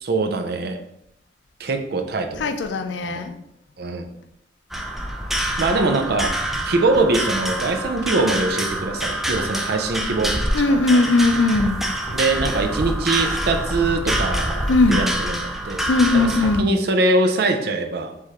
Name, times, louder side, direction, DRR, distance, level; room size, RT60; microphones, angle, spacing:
voice 1, 0.0-0.8 1.6-2.5 3.0-3.2 3.8-4.1 5.6-6.3 6.6-11.0 12.1-15.4 15.6-15.8 16.1-16.3 16.6-18.1, right 2 dB, 60° right, 6 dB, 0.5 m, -22 dB
voice 2, 2.4-3.4 10.5-11.9 14.7-15.1 15.9-16.7, left 3 dB, 90° left, 7 dB, 0.5 m, -19 dB
sound 1, 4.7-16.6, right 1 dB, ahead, 0.3 m, -26 dB
4.6 x 3.4 x 3.0 m, 0.80 s
head